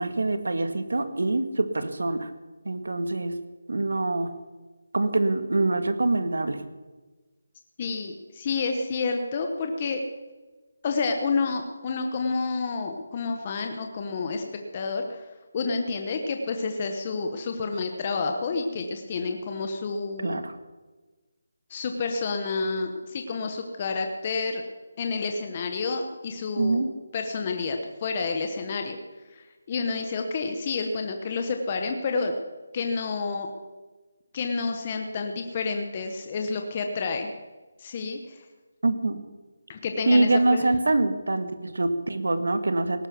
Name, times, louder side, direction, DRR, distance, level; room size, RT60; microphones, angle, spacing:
voice 1, 0.0-2.3 2.7-3.4 3.7-4.3 4.9-6.6 20.2-20.6 26.6-26.9 38.8-39.2 40.1-43.1, right 2 dB, 85° right, 10 dB, 1.7 m, -24 dB
voice 2, 7.8-10.0 10.8-14.4 14.7-15.2 15.5-20.4 21.7-24.6 25.0-26.8 27.1-29.0 29.3-32.3 32.7-33.5 34.3-37.3 37.8-38.4 39.7-40.7, left 4 dB, 25° left, 4 dB, 0.9 m, -29 dB
18.0 x 9.7 x 6.0 m, 1.2 s
figure-of-eight pair, 175°, 0 cm